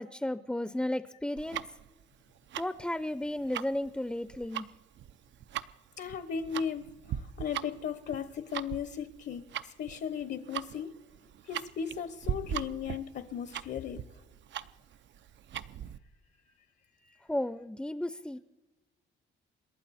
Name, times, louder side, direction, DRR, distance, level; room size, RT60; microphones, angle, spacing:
voice 1, 0.0-1.6 2.6-4.7 17.3-18.4, left 1 dB, 5° left, 13 dB, 0.6 m, -33 dB
Tick-tock, 1.4-16.0, right 10 dB, 65° right, 0.7 m, -40 dB
voice 2, 6.0-10.9 11.4-14.0 17.0-17.2, left 7 dB, 60° left, 10 dB, 1.1 m, -37 dB
28.0 x 11.5 x 4.3 m, 1.2 s
cardioid pair, 90°, 20 cm